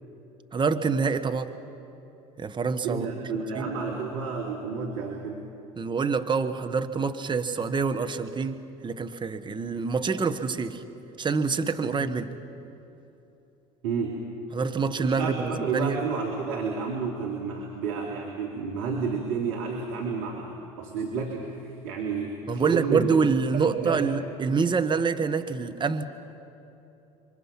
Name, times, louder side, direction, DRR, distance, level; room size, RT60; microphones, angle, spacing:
voice 1, 0.5-1.5 2.4-3.1 3.5-3.7 5.8-10.8 11.2-12.3 14.5-16.0 22.5-26.0, right 5 dB, 25° right, 8 dB, 1.4 m, -26 dB
voice 2, 2.8-5.5 11.9-12.0 13.8-14.2 15.0-23.2 23.5-24.1, right 5 dB, 70° right, 0 dB, 2.8 m, -31 dB
27.0 x 24.0 x 6.0 m, 2.9 s
hypercardioid pair, 70°, 19 cm